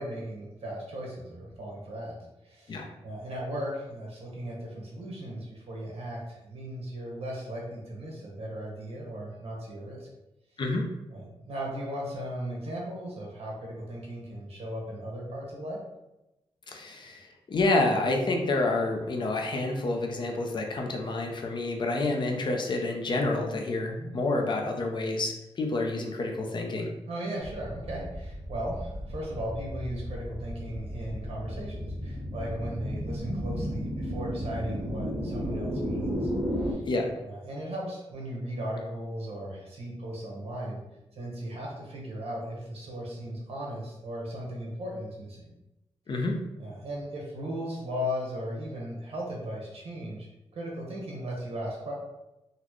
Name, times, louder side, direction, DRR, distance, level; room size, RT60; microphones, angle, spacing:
voice 1, 0.0-2.2 2.4-10.1 11.1-15.8 23.9-24.1 27.1-36.3 36.6-36.8 37.2-40.8 41.1-45.5 46.6-50.3 50.5-51.9, equal, 70° right, -3 dB, 1.1 m, -37 dB
voice 2, 16.7-26.9 36.9-37.1 46.1-46.3, left 2 dB, 45° left, 2 dB, 0.5 m, -28 dB
sound 1, 27.4-36.7, equal, 20° right, 0.8 m, -34 dB
4.0 x 2.1 x 3.0 m, 0.94 s
wide cardioid pair, 145°, 11 cm